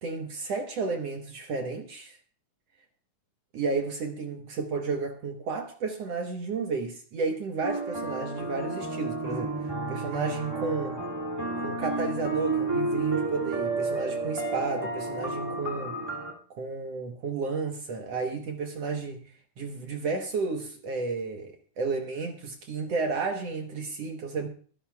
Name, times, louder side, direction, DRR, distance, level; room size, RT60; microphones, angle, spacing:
voice 1, 0.0-2.2 3.5-9.5 9.9-11.0 11.6-15.9 16.5-19.3 19.6-24.5, right 4 dB, 60° right, 1.8 m, -32 dB
sound 1, 7.6-16.3, right 3 dB, 10° right, 1.6 m, -31 dB
23.0 x 11.0 x 2.3 m
omnidirectional pair, 4.1 m